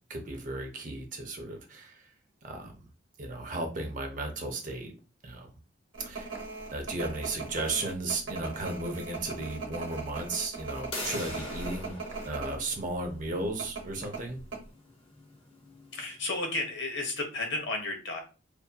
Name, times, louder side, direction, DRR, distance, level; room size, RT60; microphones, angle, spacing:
voice 1, 0.1-2.1 2.4-2.8 3.2-4.9 5.2-5.5 6.1-6.3 6.7-11.9 12.3-14.4, right 2 dB, 40° right, 2 dB, 0.6 m, -35 dB
sound 1, 5.9-12.6 12.9-13.0 13.6-14.6, right 3 dB, 75° right, 0.8 m, -39 dB
sound 2, 10.9-16.5, left 1 dB, 30° left, 0.6 m, -44 dB
voice 2, 15.9-18.2, left 2 dB, 65° left, 3 dB, 0.7 m, -33 dB
2.6 x 2.6 x 2.2 m, 0.33 s
head